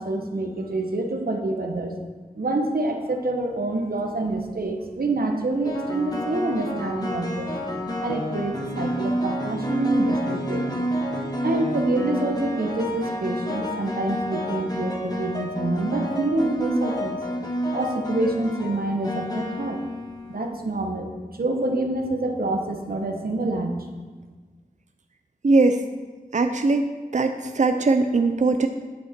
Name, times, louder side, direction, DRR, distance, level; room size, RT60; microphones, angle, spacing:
voice 1, 0.0-1.9 2.3-7.6 8.0-10.8 11.4-17.2 17.7-19.8 20.3-21.1 21.4-23.9, right 2 dB, 75° right, 3 dB, 1.1 m, -26 dB
sound 1, 4.1-4.4 5.6-20.5, equal, 25° left, 1.5 m, -29 dB
voice 2, 25.4-25.8 26.3-26.8 27.1-28.7, right 3 dB, 50° right, 7 dB, 0.6 m, -20 dB
9.1 x 8.0 x 4.5 m, 1.3 s
wide cardioid pair, 45°, 15 cm